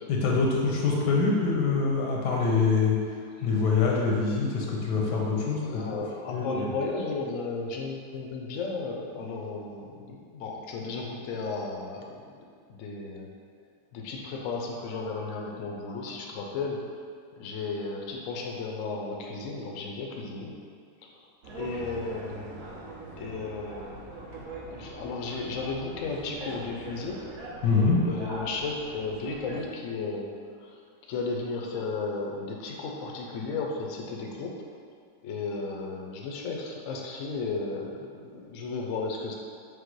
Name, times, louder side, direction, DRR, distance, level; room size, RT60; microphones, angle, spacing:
voice 1, 0.1-3.0 3.4-6.0 6.3-6.7 27.6-28.0, left 4 dB, 85° left, -2 dB, 1.3 m, -25 dB
voice 2, 5.6-12.4 12.7-13.3 13.9-16.8 17.4-20.6 21.6-22.6 23.2-24.2 24.7-27.2 28.0-30.3 30.6-30.8 31.1-34.6 35.2-39.3, left 3 dB, 65° left, 0 dB, 0.8 m, -34 dB
sound 1, 21.4-29.6, right 2 dB, 65° right, 1.1 m, -42 dB
5.0 x 2.1 x 4.5 m, 2.1 s
omnidirectional pair, 1.8 m